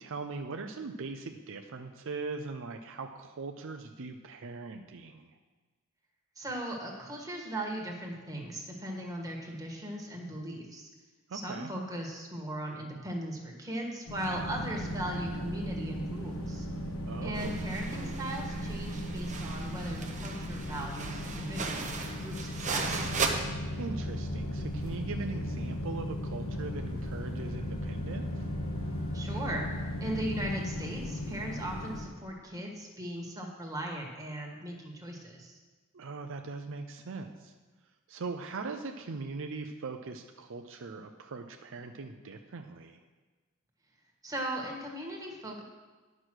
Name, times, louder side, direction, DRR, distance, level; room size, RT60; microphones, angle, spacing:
voice 1, 0.0-5.4 11.3-11.7 17.1-17.7 23.7-28.4 35.9-37.5 38.1-43.0, right 3 dB, 65° right, 6 dB, 0.5 m, -40 dB
voice 2, 6.3-10.9 11.3-16.6 17.2-23.1 29.1-29.7 30.0-35.6 44.2-45.6, right 1 dB, 15° right, 0 dB, 1.7 m, -38 dB
sound 1, 14.1-32.0, equal, 80° left, 1.3 m, -36 dB
sound 2, 17.3-23.3, right 4 dB, 35° right, 0.9 m, -37 dB
10.0 x 6.2 x 6.2 m, 1.3 s
head